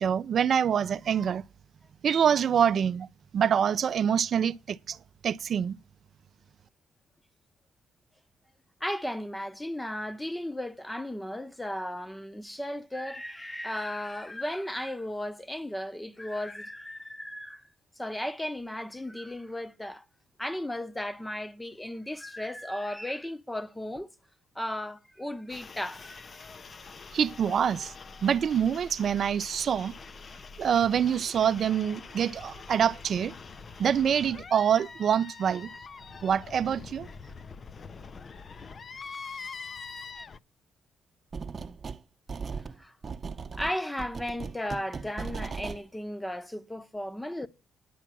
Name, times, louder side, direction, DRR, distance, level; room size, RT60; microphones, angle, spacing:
voice 1, 0.0-1.4 2.0-3.1 3.3-5.0 5.2-5.8 27.1-27.9 28.2-29.9 30.6-33.3 33.8-35.7 36.2-37.1, right 8 dB, 55° right, 0.4 m, -25 dB
voice 2, 8.8-17.7 18.0-20.0 20.4-24.1 24.5-26.5 42.8-42.9 43.5-47.5, left 1 dB, 10° left, 0.8 m, -35 dB
sound 1, 25.5-40.4, left 5 dB, 40° left, 0.5 m, -45 dB
sound 2, 41.3-42.0 42.3-45.8, right 5 dB, 40° right, 0.8 m, -38 dB
10.0 x 7.3 x 6.0 m
cardioid pair, 90°, 0 cm